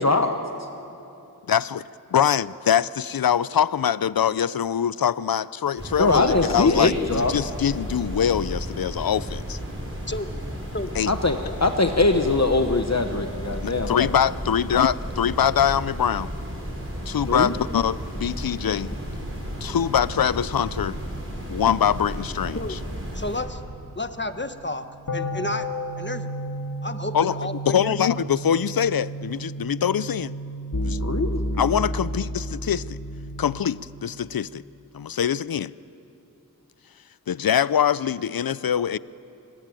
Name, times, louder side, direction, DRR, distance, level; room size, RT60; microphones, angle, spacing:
voice 1, 0.0-0.3 6.0-7.3 11.1-14.0 17.3-17.5 31.0-31.4, left 3 dB, 50° left, 6 dB, 1.1 m, -22 dB
voice 2, 1.5-9.6 11.0-11.1 13.6-16.3 17.1-18.9 19.6-21.0 21.5-22.8 27.1-27.3 27.7-30.4 30.8-31.0 31.6-33.0 33.4-34.6 34.9-35.7 37.3-39.0, left 8 dB, 85° left, 18 dB, 0.5 m, -23 dB
sound 1, 5.8-23.4, equal, 40° right, 6.0 m, -33 dB
sound 2, 18.9-33.6, right 1 dB, 65° left, 2.5 m, -33 dB
voice 3, 23.1-23.6 24.0-25.7 26.0-26.3 26.8-28.2, left 2 dB, 30° left, 9 dB, 1.3 m, -32 dB
27.0 x 20.5 x 9.1 m, 2.9 s
wide cardioid pair, 40°, 34 cm